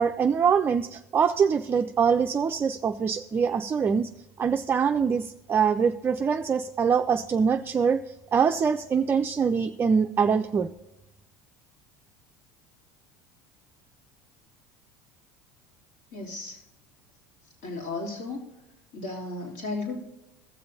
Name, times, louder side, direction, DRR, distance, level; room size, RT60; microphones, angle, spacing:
voice 1, 0.0-4.1 4.4-8.0 8.3-10.7, right 6 dB, 25° right, 6 dB, 0.4 m, -24 dB
voice 2, 16.1-16.6 17.6-18.5 18.9-20.0, left 3 dB, 70° left, -1 dB, 3.0 m, -34 dB
15.5 x 6.8 x 2.7 m, 0.95 s
supercardioid pair, 95°, 8 cm